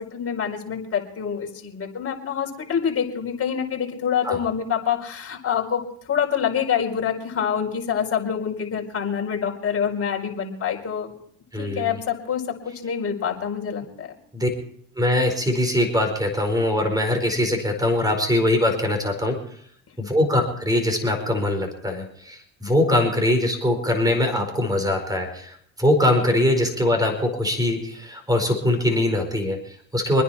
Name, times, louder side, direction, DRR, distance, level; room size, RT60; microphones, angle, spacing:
voice 1, 0.0-5.8 6.1-11.1 11.5-14.1, left 8 dB, 35° left, 0 dB, 4.8 m, -26 dB
voice 2, 11.5-11.9 14.3-14.5 15.0-19.4 20.0-30.2, left 1 dB, 10° right, 5 dB, 4.7 m, -22 dB
27.0 x 10.0 x 4.3 m, 0.64 s
supercardioid pair, 95°, 42 cm